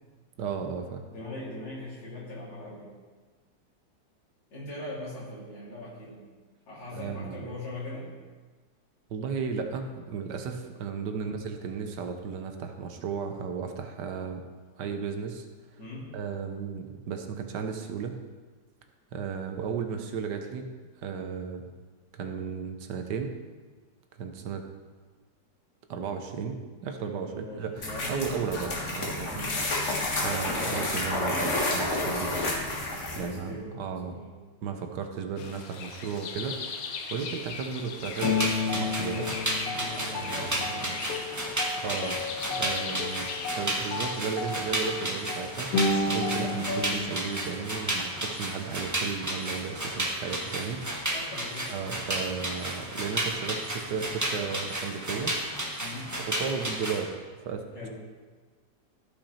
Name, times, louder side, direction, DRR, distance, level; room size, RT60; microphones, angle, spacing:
voice 1, 0.4-1.0 6.9-7.4 9.1-14.5 14.8-15.5 16.1-18.1 19.1-20.7 21.0-21.6 22.1-23.4 24.2-24.6 25.9-29.4 30.1-32.4 33.2-34.1 34.6-39.3 40.1-40.5 40.8-40.9 41.8-42.2 42.5-45.7 46.1-51.1 51.7-55.3 56.3-57.7, right 6 dB, 75° right, 5 dB, 1.4 m, -34 dB
voice 2, 1.1-3.0 4.5-6.2 6.7-8.1 11.2-11.4 15.8-16.1 27.0-28.1 29.3-29.6 33.1-34.3 39.7-40.9 51.1-51.7 55.8-56.1 57.7-57.9, left 1 dB, 85° left, -9 dB, 4.3 m, -41 dB
sound 1, 27.8-33.4, left 2 dB, 45° left, 1.8 m, -30 dB
sound 2, 35.4-47.0, left 3 dB, 60° left, 1.2 m, -32 dB
sound 3, 38.0-57.0, right 1 dB, 10° right, 1.0 m, -33 dB
13.5 x 5.9 x 4.3 m, 1.4 s
omnidirectional pair, 1.9 m